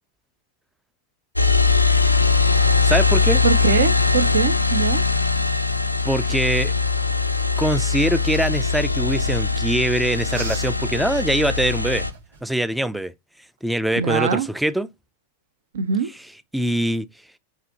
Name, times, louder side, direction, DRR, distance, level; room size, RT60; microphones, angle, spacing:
sound 1, 1.4-12.1, left 4 dB, 85° left, 0.3 m, -20 dB
voice 1, 2.8-3.4 6.0-6.7 7.6-12.1 12.4-13.1 13.6-14.9 16.5-17.1, right 1 dB, ahead, 0.3 m, -23 dB
voice 2, 3.4-5.0 14.0-14.5 15.7-16.1, right 7 dB, 65° right, 0.6 m, -22 dB
sound 2, 5.5-9.4 10.1-10.9 11.5-11.6 12.0-12.5, right 3 dB, 80° right, 1.7 m, -42 dB
4.9 x 2.6 x 2.7 m
figure-of-eight pair, 90°, 0 cm